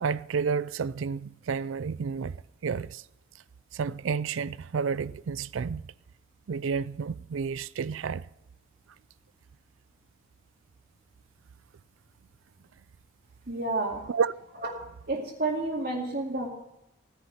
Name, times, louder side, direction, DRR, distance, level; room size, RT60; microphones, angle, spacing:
voice 1, 0.0-2.3 2.6-3.0 3.7-5.8 6.5-8.3 14.1-14.3, right 6 dB, 75° right, 0.4 m, -30 dB
voice 2, 13.5-14.0 14.6-14.7 15.1-16.5, right 2 dB, 50° right, 2.2 m, -30 dB
16.0 x 10.5 x 5.9 m
head